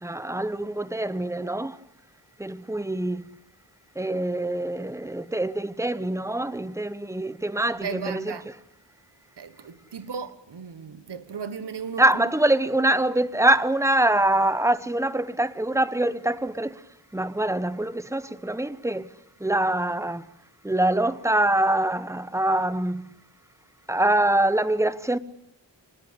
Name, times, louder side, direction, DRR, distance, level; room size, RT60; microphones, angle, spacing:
voice 1, 0.0-1.8 2.4-3.4 3.9-8.4 12.0-16.8 17.1-19.1 19.4-20.3 20.6-23.1 23.9-25.2, right 1 dB, 5° right, 1.0 m, -24 dB
voice 2, 7.8-8.4 9.4-12.3, right 6 dB, 65° right, 1.5 m, -36 dB
26.0 x 20.0 x 8.3 m
wide cardioid pair, 115°, 43 cm